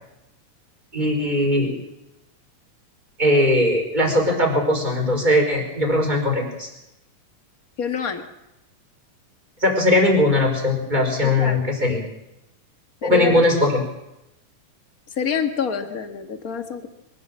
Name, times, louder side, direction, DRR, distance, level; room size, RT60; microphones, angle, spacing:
voice 1, 0.9-1.7 3.2-6.7 9.6-12.0 13.0-13.8, left 1 dB, 15° right, 1 dB, 4.9 m, -19 dB
voice 2, 7.8-8.2 11.2-11.6 13.0-13.4 15.1-16.9, left 6 dB, 40° left, 6 dB, 1.3 m, -27 dB
24.0 x 16.0 x 7.6 m, 0.88 s
omnidirectional pair, 3.7 m